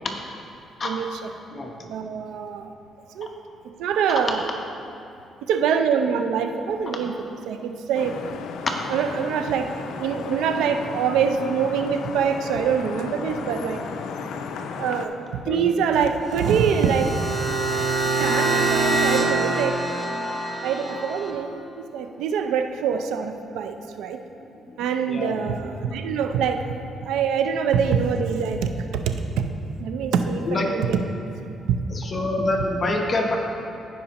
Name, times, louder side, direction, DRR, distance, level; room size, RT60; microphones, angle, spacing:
voice 1, 0.8-1.3 1.8-2.7 3.1-3.3 3.8-4.6 5.5-7.2 7.5-8.2 8.9-13.8 14.8-17.2 18.2-19.8 20.6-24.2 24.8-26.8 27.0-29.5 29.8-31.0 31.7-31.8, right 7 dB, 90° right, 7 dB, 0.5 m, -24 dB
Vehicle horn car horn honking / Traffic noise roadway noise, 7.9-15.1, left 5 dB, 80° left, 0.5 m, -34 dB
sound 1, 16.2-21.3, right 3 dB, 10° left, 1.2 m, -25 dB
voice 2, 31.9-33.4, left 2 dB, 40° left, 2 dB, 0.9 m, -25 dB
15.0 x 5.2 x 2.9 m, 2.7 s
cardioid pair, 90°, 0 cm